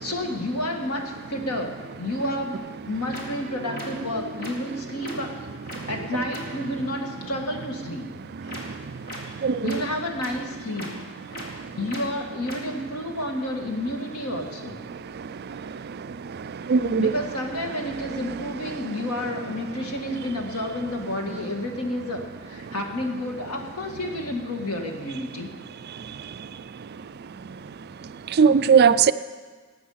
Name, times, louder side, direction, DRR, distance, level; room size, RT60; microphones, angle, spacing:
voice 1, 0.0-5.4 5.9-8.1 8.4-8.6 9.6-11.0 11.5-14.8 17.0-25.5, left 1 dB, 85° left, 3 dB, 1.9 m, -30 dB
sound 1, 2.5-2.6 3.1-3.2 3.7-3.9 4.4-4.5 5.0-5.1 5.7-5.8 6.3-6.4 8.5-8.6 9.1-9.2 9.7-9.8 10.2-10.3 10.8-10.9 11.3-11.4 11.9-12.0 12.5-12.6, left 1 dB, 45° left, 2.6 m, -37 dB
voice 2, 9.4-9.7 16.7-17.1 28.4-29.1, right 6 dB, 45° right, 13 dB, 0.4 m, -17 dB
18.5 x 8.5 x 5.7 m, 1.4 s
head